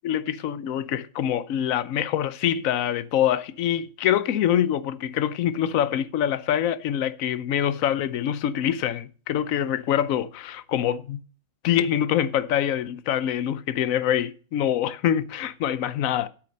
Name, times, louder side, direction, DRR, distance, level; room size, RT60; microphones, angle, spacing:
voice 1, 0.0-11.2 11.6-16.3, left 10 dB, 85° left, 1.1 m, -25 dB
8.6 x 8.5 x 6.5 m
omnidirectional pair, 1.4 m